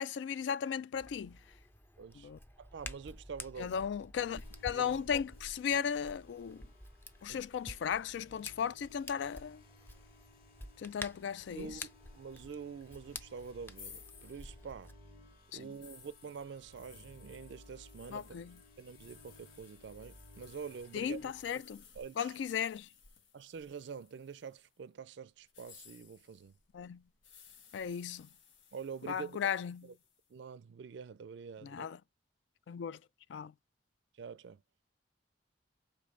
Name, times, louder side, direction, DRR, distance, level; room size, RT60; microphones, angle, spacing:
voice 1, 0.0-1.4 2.2-2.4 3.6-6.7 7.2-9.6 10.8-11.8 15.5-15.6 18.1-18.5 20.9-21.8 22.2-22.9 26.7-27.0 27.7-28.3 29.1-29.9 31.6-32.0 32.7-33.0 33.3-33.5, left 7 dB, 70° left, 0.3 m, -36 dB
Hands, 0.9-14.9, left 1 dB, 10° left, 0.5 m, -50 dB
voice 2, 2.0-2.3 2.6-3.8 4.7-5.0 7.3-7.4 11.5-14.9 15.5-18.4 18.8-21.6 21.9-22.4 23.3-26.6 28.7-29.4 29.8-29.9 30.3-31.9 34.1-34.6, right 6 dB, 70° right, 0.4 m, -46 dB
sound 1, 4.2-21.6, left 1 dB, 50° left, 1.6 m, -59 dB
sound 2, 13.7-24.7 25.4-30.3, left 7 dB, 90° left, 1.1 m, -59 dB
5.1 x 3.3 x 2.5 m
head